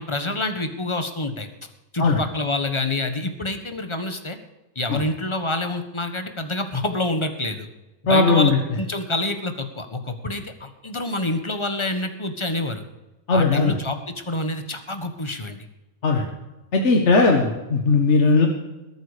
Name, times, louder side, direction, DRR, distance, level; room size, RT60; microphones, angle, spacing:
voice 1, 0.0-1.5 1.9-4.4 4.7-7.7 8.0-12.8 13.3-15.7, left 2 dB, 20° left, 7 dB, 1.4 m, -27 dB
voice 2, 8.1-8.6 13.3-13.8 16.0-16.3 16.7-18.5, left 3 dB, 50° left, 2 dB, 1.8 m, -18 dB
21.0 x 9.0 x 5.1 m, 1.1 s
omnidirectional pair, 1.6 m